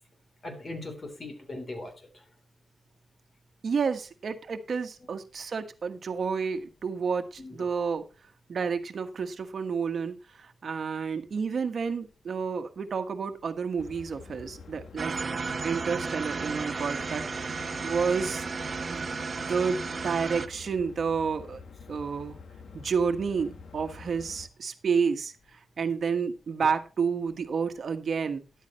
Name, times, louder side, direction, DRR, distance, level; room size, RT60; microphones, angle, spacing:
voice 1, 0.4-2.1 7.4-7.7 17.6-17.7 26.6-26.7, left 2 dB, 40° left, 6 dB, 3.3 m, -40 dB
voice 2, 3.6-8.0 8.5-15.1 15.6-18.4 18.9-19.1 19.4-21.6 21.9-22.4 22.7-28.4, right 5 dB, 60° right, 7 dB, 1.4 m, -30 dB
sound 1, 13.8-24.5, left 5 dB, 75° left, 1.3 m, -47 dB
sound 2, 15.0-20.5, right 4 dB, 40° right, 0.9 m, -33 dB
13.5 x 11.5 x 3.1 m, 0.30 s
wide cardioid pair, 140°, 0 cm